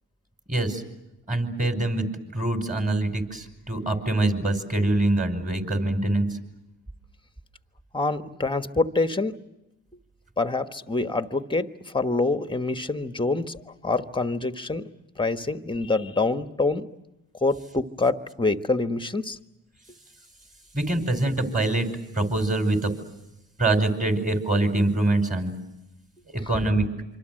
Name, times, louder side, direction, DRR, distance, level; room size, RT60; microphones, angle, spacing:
voice 1, 0.5-0.8 1.3-2.1 2.3-6.4 20.7-21.9 22.1-22.9 23.6-25.5 26.3-26.9, right 2 dB, 20° right, 6 dB, 5.4 m, -24 dB
voice 2, 7.9-9.4 10.4-14.9 15.2-16.9 17.4-19.4, left 3 dB, 10° left, 9 dB, 1.4 m, -26 dB
26.0 x 26.0 x 7.8 m, 0.94 s
cardioid pair, 90°, 43 cm